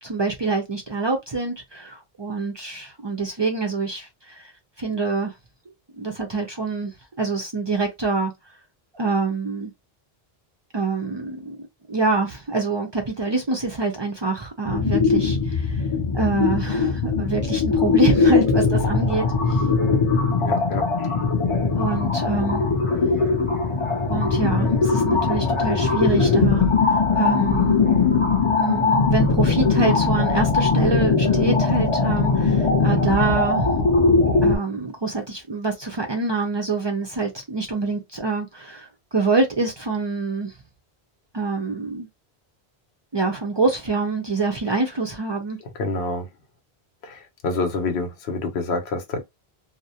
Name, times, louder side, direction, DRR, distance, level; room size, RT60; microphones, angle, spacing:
voice 1, 0.0-4.5 4.8-5.3 6.0-6.9 7.2-8.3 8.9-9.7 10.7-11.6 11.9-15.8 16.1-19.6 21.8-22.6 24.1-26.7 27.1-27.8 28.6-33.7 34.4-40.5 41.3-42.1 43.1-45.6, right 3 dB, 45° right, 0.3 m, -25 dB
sound 1, 14.7-34.6, left 4 dB, 35° left, 0.6 m, -20 dB
voice 2, 20.4-21.2 45.7-46.3 47.0-49.2, left 3 dB, 90° left, 0.9 m, -27 dB
2.4 x 2.0 x 2.7 m
omnidirectional pair, 1.0 m